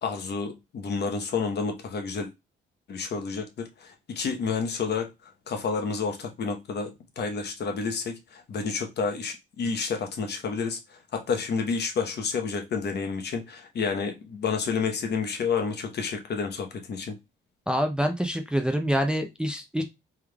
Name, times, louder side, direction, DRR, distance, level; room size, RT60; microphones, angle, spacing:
voice 1, 0.0-2.3 2.9-17.2, left 5 dB, 55° left, 0.9 m, -30 dB
voice 2, 17.7-19.8, equal, 5° right, 0.5 m, -26 dB
3.5 x 3.2 x 2.2 m
cardioid pair, 90°, 20 cm